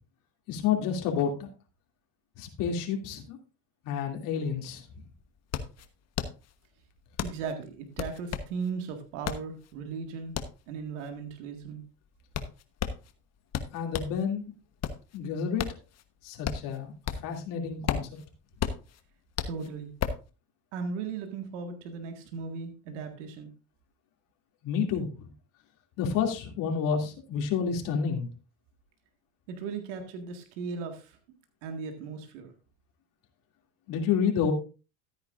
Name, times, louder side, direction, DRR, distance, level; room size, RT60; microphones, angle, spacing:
voice 1, 0.5-1.5 2.4-3.4 3.8-4.8 13.7-14.4 15.1-15.7 16.2-18.1 24.6-25.1 26.0-28.3 33.9-34.5, left 7 dB, 65° left, 3 dB, 2.7 m, -29 dB
sound 1, 4.6-4.7 4.9-14.2 14.6-17.4 17.7-20.3, left 8 dB, 45° left, 1.2 m, -35 dB
voice 2, 7.2-10.4 10.7-11.8 19.5-19.9 20.7-23.5 29.5-31.2 31.6-32.5, right 5 dB, 90° right, 5 dB, 1.9 m, -37 dB
13.5 x 9.5 x 2.5 m, 0.32 s
supercardioid pair, 105°, 36 cm